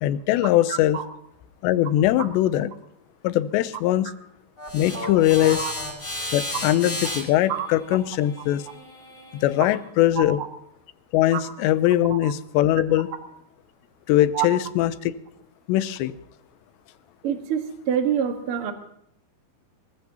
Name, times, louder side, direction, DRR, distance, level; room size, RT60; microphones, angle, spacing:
voice 1, 0.0-1.0 1.6-2.7 3.2-4.1 4.7-5.7 6.3-8.7 9.3-10.4 11.1-13.1 14.1-15.1 15.7-16.1, left 13 dB, 90° left, 14 dB, 3.0 m, -21 dB
voice 2, 0.7-1.1 5.4-5.7 7.5-7.7 10.2-10.5 11.3-11.5 12.1-12.3 14.3-14.5 17.2-18.7, right 8 dB, 55° right, 5 dB, 1.6 m, -27 dB
sound 1, 4.6-9.8, left 1 dB, 25° left, 6.1 m, -34 dB
24.5 x 15.0 x 2.9 m, 0.75 s
omnidirectional pair, 4.9 m